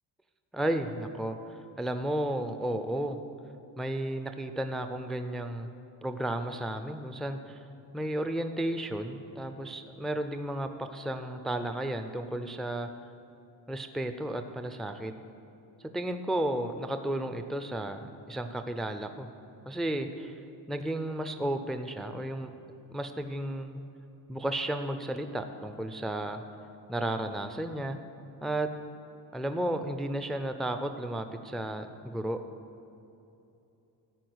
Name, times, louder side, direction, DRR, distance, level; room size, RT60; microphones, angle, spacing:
voice 1, 0.5-3.2 3.8-5.8 6.0-7.7 7.9-12.9 13.7-15.1 15.9-19.3 19.7-20.4 20.7-22.5 22.9-23.8 24.3-26.4 26.9-28.0 28.4-28.7 29.3-32.4, right 1 dB, ahead, 8 dB, 0.4 m, -33 dB
13.5 x 4.6 x 7.9 m, 2.8 s
cardioid pair, 125°, 42 cm